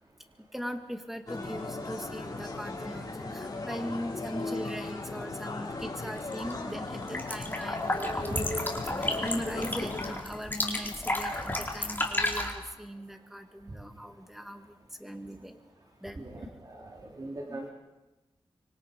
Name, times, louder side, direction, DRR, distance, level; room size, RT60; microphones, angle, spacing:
voice 1, 0.5-8.5 9.0-15.6 16.0-16.5 17.5-17.6, equal, 5° right, 6 dB, 2.3 m, -40 dB
sound 1, 1.3-10.2, left 2 dB, 40° left, 5.7 m, -37 dB
sound 2, 6.2-6.5 6.8-12.5, left 1 dB, 20° left, 4.2 m, -33 dB
voice 2, 16.2-17.7, right 2 dB, 40° right, -1 dB, 3.5 m, -39 dB
25.5 x 24.5 x 5.4 m, 1.0 s
wide cardioid pair, 75°, 10 cm